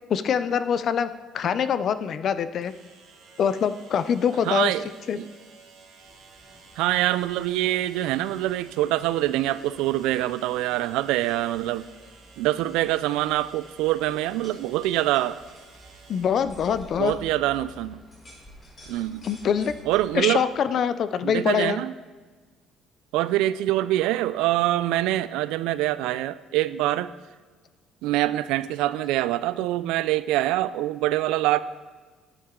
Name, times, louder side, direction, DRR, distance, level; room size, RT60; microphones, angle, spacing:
voice 1, 0.1-1.1 1.3-2.7 3.4-4.7 5.1-5.2 16.1-17.1 19.2-19.7 20.1-21.8, left 7 dB, 45° left, 14 dB, 0.4 m, -24 dB
sound 1, 2.6-16.3, right 4 dB, 65° right, 1.8 m, -52 dB
voice 2, 4.5-4.9 5.2-5.3 6.8-11.9 12.4-15.4 17.0-18.0 18.9-19.3 19.9-20.4 21.2-21.9 23.1-27.1 28.0-31.6, right 15 dB, 90° right, 16 dB, 0.3 m, -25 dB
sound 2, 6.0-20.2, left 1 dB, 5° left, 1.0 m, -52 dB
sound 3, 14.4-17.8 18.1-19.7, left 1 dB, 30° left, 3.2 m, -53 dB
9.4 x 8.7 x 3.7 m, 1.4 s
cardioid pair, 145°, 0 cm